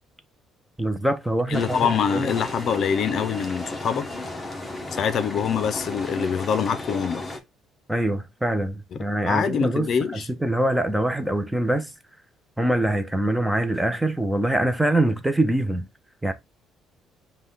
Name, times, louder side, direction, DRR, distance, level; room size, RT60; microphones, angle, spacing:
voice 1, 0.8-2.3 7.9-11.9 12.6-15.9 16.2-16.3, right 1 dB, 5° right, 0.6 m, -24 dB
voice 2, 1.5-4.0 4.9-7.2 9.2-10.3, left 7 dB, 50° left, 0.6 m, -24 dB
sound 1, 1.5-7.4, left 2 dB, 15° left, 0.9 m, -34 dB
5.4 x 2.3 x 3.9 m
cardioid pair, 125°, 0 cm